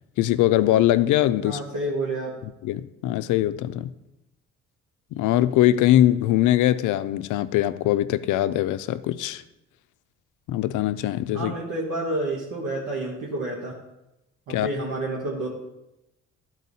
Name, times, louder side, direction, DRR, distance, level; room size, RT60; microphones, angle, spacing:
voice 1, 0.2-1.6 2.4-3.9 5.1-9.4 10.5-11.5 14.5-14.7, left 13 dB, 85° left, 14 dB, 0.5 m, -22 dB
voice 2, 1.4-2.4 11.3-13.8 14.5-15.5, right 2 dB, 80° right, -4 dB, 1.4 m, -29 dB
11.0 x 4.6 x 4.1 m, 0.91 s
cardioid pair, 90°, 30 cm